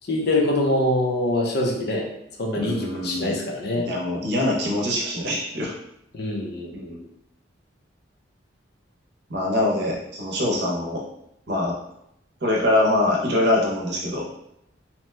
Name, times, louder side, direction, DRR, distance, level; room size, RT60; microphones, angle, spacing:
voice 1, 0.1-2.1 2.4-3.9 6.1-7.0, left 1 dB, 55° left, 0 dB, 0.6 m, -24 dB
voice 2, 2.5-3.4 3.8-5.7 6.7-7.0 9.3-11.0 11.5-11.8 12.4-14.3, left 1 dB, 60° right, -2 dB, 0.7 m, -24 dB
2.9 x 2.1 x 3.2 m, 0.78 s
head